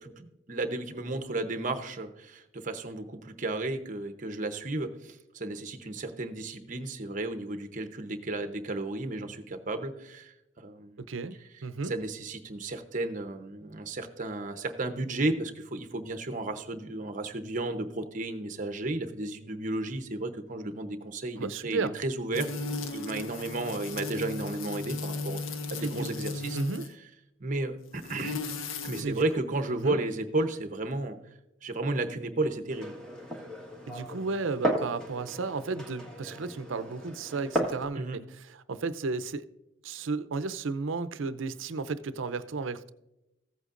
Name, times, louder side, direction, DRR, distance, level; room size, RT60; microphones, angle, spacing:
voice 1, 0.0-11.0 11.8-22.5 22.9-25.4 25.7-26.6 27.4-28.4 28.8-31.2 31.6-32.9 38.0-38.2, right 2 dB, 40° right, 7 dB, 0.8 m, -33 dB
voice 2, 11.0-11.4 11.6-11.9 21.4-21.9 25.8-26.1 26.5-26.8 29.0-29.4 29.8-30.0 33.9-39.4 39.8-42.9, right 4 dB, 75° right, 14 dB, 0.6 m, -33 dB
Insect - Bee - Stereo, 22.3-27.0 27.9-29.0, left 3 dB, 85° left, 0.8 m, -36 dB
Glass, 32.7-37.8, right 1 dB, 5° left, 1.5 m, -35 dB
15.0 x 8.1 x 2.5 m, 0.91 s
head